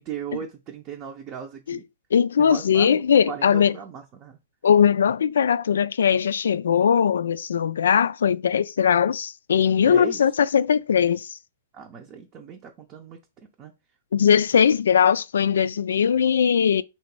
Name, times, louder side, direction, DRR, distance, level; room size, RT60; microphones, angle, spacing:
voice 1, 0.0-1.9 2.4-4.4 9.8-10.2 11.7-13.2 13.6-13.7, right 8 dB, 30° right, 0.6 m, -37 dB
voice 2, 2.1-3.7 4.6-11.4 14.1-16.8, left 7 dB, 80° left, 0.3 m, -20 dB
3.1 x 2.9 x 4.6 m
hypercardioid pair, 145°, 0 cm